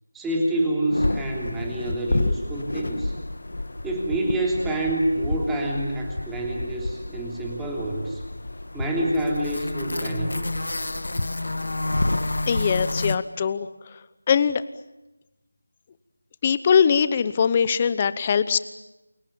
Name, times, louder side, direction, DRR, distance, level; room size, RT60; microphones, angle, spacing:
voice 1, 0.1-3.2 3.8-8.2 8.7-10.5, right 1 dB, 5° right, -2 dB, 3.2 m, -27 dB
sound 1, 0.9-13.2, left 2 dB, 70° left, 2.0 m, -29 dB
voice 2, 12.5-14.0 14.3-14.6 16.4-18.6, left 7 dB, 20° left, 15 dB, 0.9 m, -21 dB
29.5 x 28.0 x 7.1 m, 0.98 s
figure-of-eight pair, 175°, 0 cm